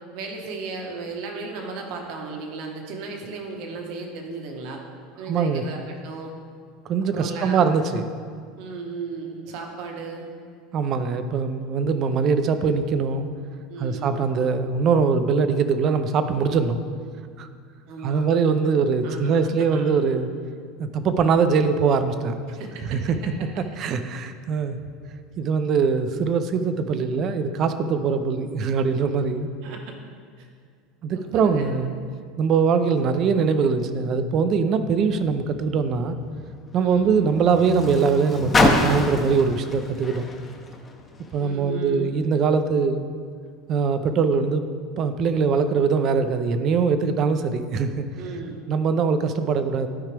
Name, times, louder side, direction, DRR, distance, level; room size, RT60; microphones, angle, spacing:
voice 1, 0.1-4.8 5.2-6.3 7.0-7.6 8.6-10.3 13.7-14.1 17.9-18.3 18.9-20.0 21.3-21.5 22.5-23.3 28.8-28.9 29.6-29.9 30.4-30.5 31.1-31.7 36.7-37.1 41.4-42.1 48.2-48.6, right 3 dB, 65° right, 2 dB, 1.3 m, -35 dB
voice 2, 5.3-5.6 6.9-8.1 10.7-13.3 13.8-16.8 17.4-17.5 18.0-20.3 20.8-22.4 22.9-23.0 23.8-24.8 25.4-29.5 31.0-31.9 32.4-36.2 36.7-40.3 41.3-43.0 43.7-44.6 45.0-48.0 48.7-49.9, right 5 dB, 45° right, 10 dB, 0.5 m, -22 dB
Car, 35.0-41.5 42.3-42.4, left 3 dB, 25° left, 0.8 m, -27 dB
12.0 x 4.7 x 3.4 m, 2.1 s
supercardioid pair, 120°, 0 cm